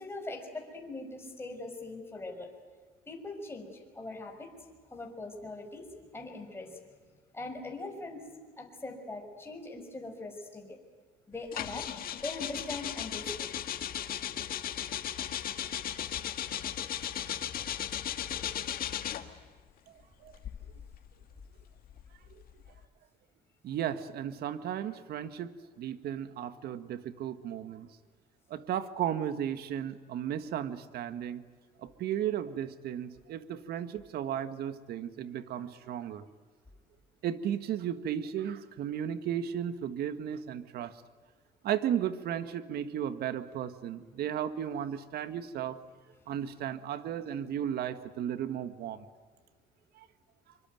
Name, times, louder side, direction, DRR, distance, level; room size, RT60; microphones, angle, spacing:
voice 1, 0.0-2.5 3.1-4.5 4.9-5.9 6.1-6.8 7.3-8.3 8.6-10.8 11.3-13.5, left 2 dB, 15° left, 2 dB, 5.8 m, -41 dB
sound 1, 11.5-19.4 20.3-22.8, left 10 dB, 60° left, 2.0 m, -36 dB
voice 2, 23.6-27.9 28.5-31.4 31.8-36.3 37.2-41.0 41.6-45.8 46.3-49.1 50.0-50.1, right 10 dB, 70° right, 11 dB, 1.7 m, -35 dB
25.0 x 24.5 x 9.3 m, 1.5 s
cardioid pair, 110°, 17 cm